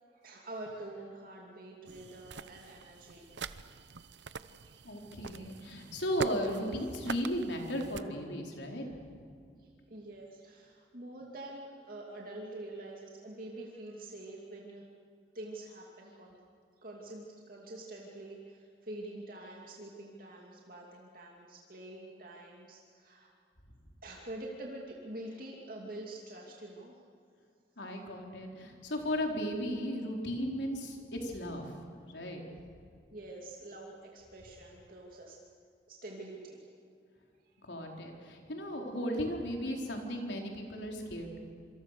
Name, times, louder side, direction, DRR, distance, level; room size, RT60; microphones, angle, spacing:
voice 1, 0.1-3.3 4.7-4.8 5.4-5.5 9.6-14.9 15.3-16.4 16.8-23.3 24.0-27.0 33.1-35.4 35.9-36.7 37.4-37.5, right 1 dB, 50° right, -1 dB, 2.6 m, -46 dB
sound 1, 1.9-8.0, right 5 dB, 75° right, 0.8 m, -44 dB
voice 2, 4.8-8.9 27.8-31.8 32.1-32.4 37.7-41.4, equal, 80° left, 1 dB, 4.4 m, -35 dB
27.0 x 25.5 x 6.8 m, 2.3 s
head